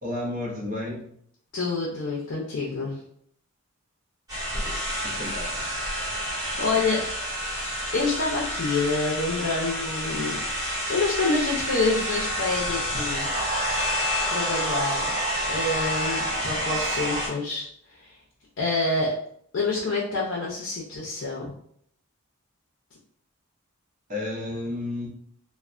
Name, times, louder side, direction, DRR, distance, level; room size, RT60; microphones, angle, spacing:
voice 1, 0.0-1.1 5.0-5.8 24.1-25.1, left 2 dB, 35° right, -2 dB, 0.7 m, -32 dB
voice 2, 1.5-3.0 6.4-7.0 7.9-13.3 14.3-15.1 15.5-18.2 18.6-19.1 19.5-21.6, left 3 dB, 60° left, -3 dB, 0.5 m, -27 dB
sound 1, 4.3-17.3, equal, 15° right, 1.1 m, -29 dB
3.2 x 2.1 x 2.4 m, 0.65 s
head